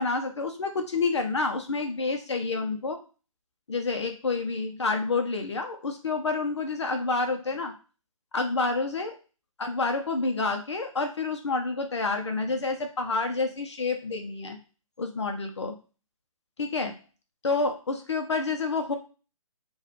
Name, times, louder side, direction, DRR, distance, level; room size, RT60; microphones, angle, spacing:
voice 1, 0.0-3.0 3.7-7.7 8.3-9.2 9.6-14.6 15.0-15.8 16.6-17.0 17.4-18.9, left 3 dB, 55° left, 5 dB, 0.6 m, -28 dB
5.4 x 2.3 x 3.1 m, 0.35 s
figure-of-eight pair, 140°, 18 cm